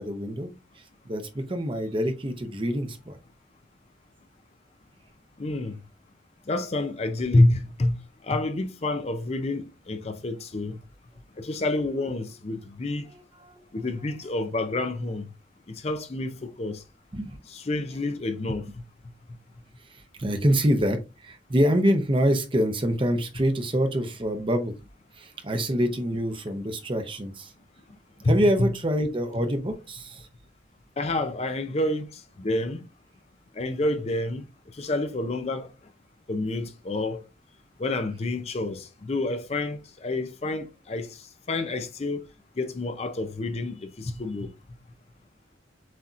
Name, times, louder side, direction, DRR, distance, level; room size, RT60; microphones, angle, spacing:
voice 1, 0.0-3.2 13.1-13.6 17.1-17.4 19.9-24.7 25.1-27.5 28.3-30.3, equal, 25° right, 0.7 m, -26 dB
voice 2, 5.4-5.8 6.5-8.0 8.2-10.8 11.4-13.1 13.7-15.3 15.7-16.8 17.5-18.7 28.2-28.7 31.0-32.8 33.6-34.5 34.7-35.7 36.3-37.2 37.8-42.3 42.6-44.5, left 2 dB, 35° left, 0.5 m, -28 dB
7.5 x 2.8 x 2.4 m
head